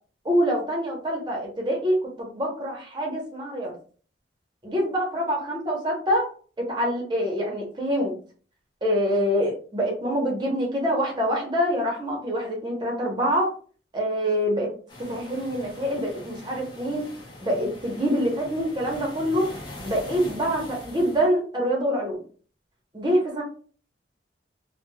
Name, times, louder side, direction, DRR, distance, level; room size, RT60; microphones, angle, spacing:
voice 1, 0.2-3.7 4.6-6.3 6.6-8.1 8.8-13.5 13.9-14.7 15.0-17.1 17.4-19.5 19.8-22.2 22.9-23.4, equal, 25° right, -1 dB, 0.8 m, -25 dB
sound 1, 14.9-21.3, left 1 dB, 25° left, 0.6 m, -42 dB
3.1 x 2.2 x 2.2 m, 0.41 s
head